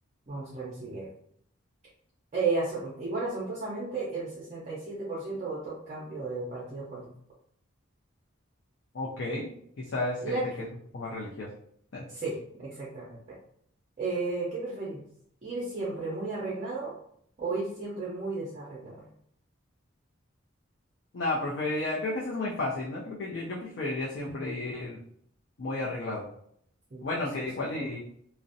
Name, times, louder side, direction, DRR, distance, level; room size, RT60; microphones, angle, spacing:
voice 1, 0.3-1.1 2.3-7.1 10.2-10.4 12.1-13.4 14.0-15.0 15.4-16.9 17.4-19.0 26.9-27.9, right 3 dB, 35° right, -7 dB, 0.5 m, -34 dB
voice 2, 8.9-10.7 10.9-11.5 11.9-12.0 21.1-25.0 25.6-26.3 27.0-28.0, left 2 dB, 55° left, -4 dB, 0.4 m, -32 dB
2.5 x 2.0 x 2.6 m, 0.68 s
head